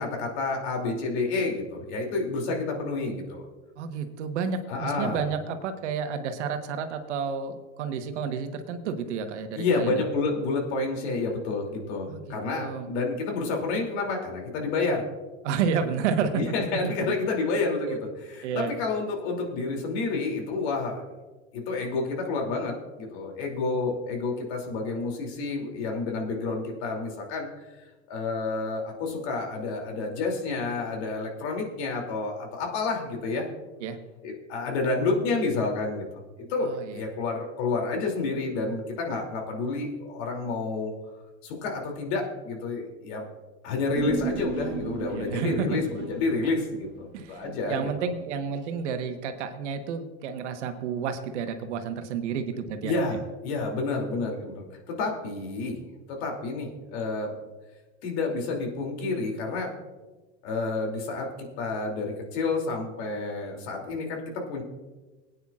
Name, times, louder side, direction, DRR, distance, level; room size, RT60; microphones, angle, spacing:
voice 1, 0.0-3.5 4.7-5.2 9.5-15.0 16.3-21.0 21.5-27.5 28.1-33.5 34.2-40.9 41.4-43.2 43.6-47.9 52.8-55.8 56.1-57.3 58.0-59.7 60.4-61.3 61.6-64.6, left 3 dB, 65° left, 1 dB, 2.9 m, -29 dB
voice 2, 3.8-10.0 12.1-12.9 15.4-17.1 17.9-18.0 18.4-18.7 33.8-34.0 36.6-37.0 45.1-45.8 47.1-47.4 47.7-52.9, right 6 dB, 80° right, 7 dB, 1.3 m, -31 dB
Human voice, 43.9-48.6 48.9-49.0, right 7 dB, 35° right, 1.2 m, -36 dB
21.5 x 9.3 x 2.4 m, 1.2 s
supercardioid pair, 110°, 35 cm